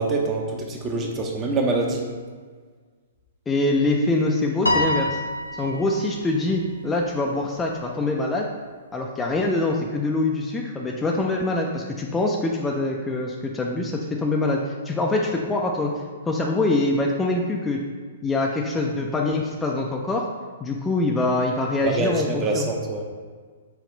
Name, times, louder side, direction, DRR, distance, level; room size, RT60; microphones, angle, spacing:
voice 1, 0.0-2.1 21.8-23.0, right 3 dB, 20° right, 1 dB, 0.6 m, -25 dB
voice 2, 3.5-5.2 5.5-8.5 8.9-15.9 16.3-17.8 18.2-20.3 20.6-22.7, left 2 dB, 10° left, 0 dB, 0.4 m, -24 dB
Piano, 4.7-6.2, left 1 dB, 85° left, 0.4 m, -25 dB
5.2 x 2.4 x 3.8 m, 1.5 s
figure-of-eight pair, 115°, 0 cm